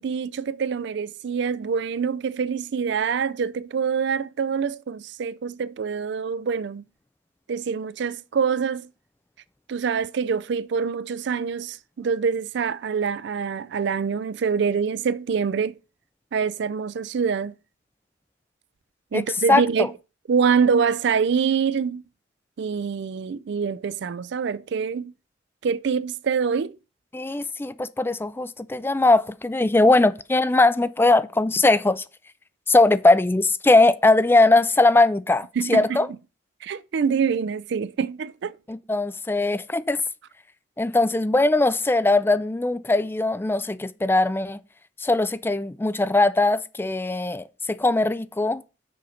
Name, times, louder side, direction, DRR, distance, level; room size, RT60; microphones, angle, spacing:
voice 1, 0.0-6.8 7.5-8.9 9.7-15.7 16.3-17.5 19.1-19.9 20.3-22.0 22.6-25.1 25.6-26.7 35.6-36.0 36.6-38.6, right 6 dB, 65° right, 0.4 m, -25 dB
voice 2, 19.5-19.9 27.1-32.0 32.7-36.1 38.7-40.0 40.8-44.6 45.0-48.6, left 2 dB, 10° left, 0.4 m, -20 dB
6.6 x 4.2 x 6.3 m
head